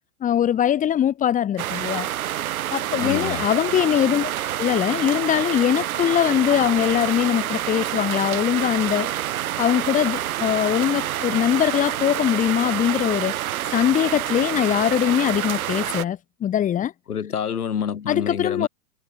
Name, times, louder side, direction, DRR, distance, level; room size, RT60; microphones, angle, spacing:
voice 1, 0.2-2.1 2.7-4.3 4.6-9.1 9.6-13.3 13.7-16.9 18.1-18.7, left 10 dB, 15° left, 1.2 m, -22 dB
sound 1, 1.6-16.0, right 12 dB, 70° right, 1.2 m, -27 dB
voice 2, 3.0-3.5 17.1-18.7, left 7 dB, 80° left, 2.2 m, -27 dB
hypercardioid pair, 115°, 45 cm